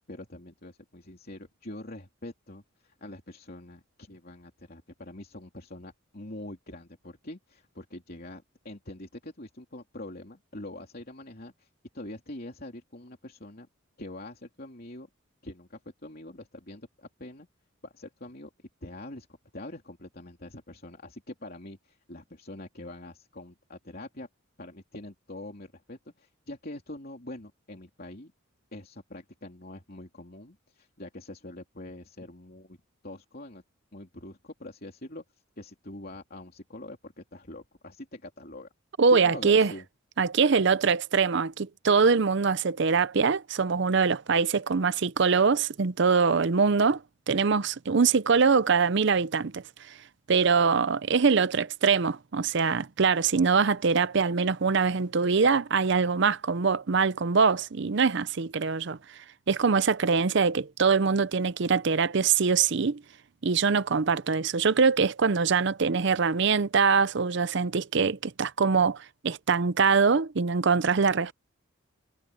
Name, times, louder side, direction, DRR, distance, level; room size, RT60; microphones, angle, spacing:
voice 1, 0.1-11.7 11.9-13.7 14.0-15.1 15.4-17.5 17.8-18.5 18.8-19.3 19.5-24.3 24.6-28.3 28.7-32.8 33.0-33.6 33.9-35.2 35.6-38.7 39.1-39.8, left 1 dB, 45° left, 3.2 m, -44 dB
voice 2, 39.0-39.7 40.2-49.6 50.3-59.0 59.5-63.0 63.4-71.3, right 5 dB, 55° right, 0.6 m, -23 dB
head